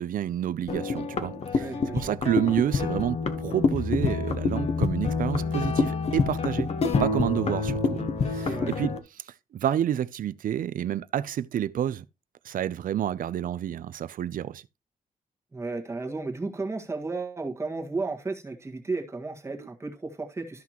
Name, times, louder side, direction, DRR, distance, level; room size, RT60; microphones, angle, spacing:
voice 1, 0.0-6.7 7.0-8.0 8.3-8.9 9.5-12.0 12.4-14.6, right 10 dB, 80° right, 0.5 m, -29 dB
sound 1, 0.7-9.0, left 4 dB, 50° left, 1.1 m, -27 dB
voice 2, 1.5-2.1 8.3-8.7 15.5-20.6, right 3 dB, 20° right, 1.7 m, -33 dB
13.5 x 5.9 x 3.0 m
wide cardioid pair, 175°, 14 cm